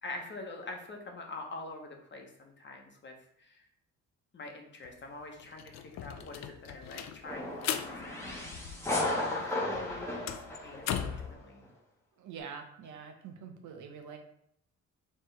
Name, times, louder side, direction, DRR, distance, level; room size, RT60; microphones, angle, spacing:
voice 1, 0.0-3.7 4.3-8.3 9.1-11.7, left 2 dB, 40° left, 2 dB, 0.9 m, -45 dB
Opening and closing door, 4.8-4.9 5.2-9.1 9.4-11.3, left 9 dB, 60° left, 0.5 m, -38 dB
sound 1, 7.2-11.3, left 2 dB, 10° left, 1.2 m, -35 dB
voice 2, 12.2-14.2, right 6 dB, 75° right, 4 dB, 0.8 m, -45 dB
4.3 x 3.2 x 3.2 m, 0.71 s
cardioid pair, 90°, 30 cm